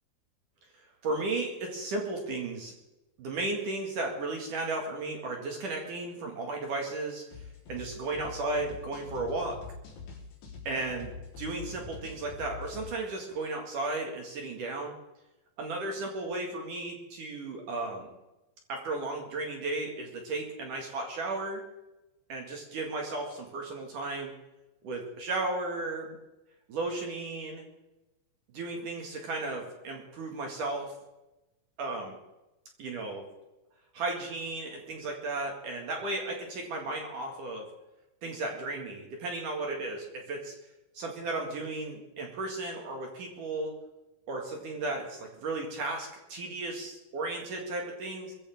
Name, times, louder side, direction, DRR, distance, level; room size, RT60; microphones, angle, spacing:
voice 1, 1.0-2.7 3.2-9.6 10.6-15.0 15.6-18.1 18.7-21.6 22.3-24.3 24.8-26.2 26.7-27.6 28.5-30.9 31.8-32.2 32.8-33.3 33.9-37.7 38.2-40.5 40.9-43.7 44.3-48.3, right 2 dB, 50° right, 1 dB, 2.8 m, -34 dB
sound 1, 7.3-12.9, left 4 dB, 60° left, 5.6 m, -44 dB
22.0 x 15.5 x 3.6 m, 1.0 s
omnidirectional pair, 5.7 m